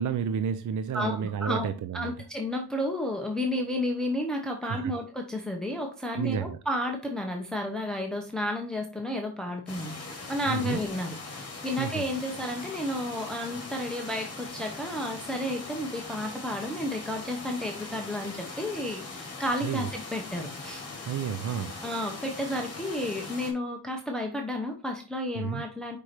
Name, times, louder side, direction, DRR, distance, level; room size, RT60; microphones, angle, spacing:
voice 1, 0.0-2.1 4.6-4.9 6.2-6.6 10.5-10.8 11.8-12.1 19.6-19.9 21.0-21.8 25.4-25.6, right 7 dB, 50° right, 0.5 m, -31 dB
voice 2, 0.9-1.7 1.9-11.2 11.6-20.8 21.8-26.0, left 1 dB, ahead, 0.8 m, -32 dB
sound 1, 9.7-23.5, left 3 dB, 35° left, 2.1 m, -41 dB
5.2 x 4.7 x 4.3 m
wide cardioid pair, 140°, 41 cm